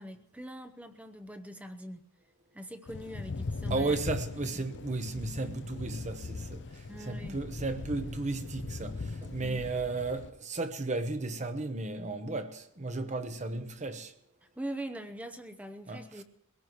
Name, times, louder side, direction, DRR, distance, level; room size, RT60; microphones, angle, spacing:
voice 1, 0.0-2.0 2.5-4.0 6.9-7.4 9.4-9.7 14.6-16.2, right 1 dB, 5° right, 0.8 m, -42 dB
Thunder / Rain, 2.9-10.3, left 3 dB, 55° left, 0.7 m, -39 dB
voice 2, 3.7-6.6 7.0-14.1 15.9-16.2, right 3 dB, 35° right, 1.0 m, -34 dB
22.5 x 17.5 x 3.1 m
head